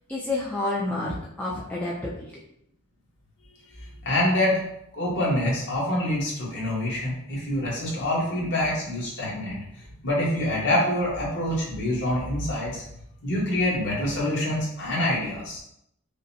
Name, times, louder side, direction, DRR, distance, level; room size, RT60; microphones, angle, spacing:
voice 1, 0.1-2.3, left 2 dB, 5° left, -6 dB, 0.4 m, -29 dB
voice 2, 3.8-4.6 4.9-9.6 10.0-12.8 13.2-15.6, left 1 dB, 50° left, -5 dB, 1.2 m, -26 dB
5.0 x 2.1 x 2.7 m, 0.74 s
head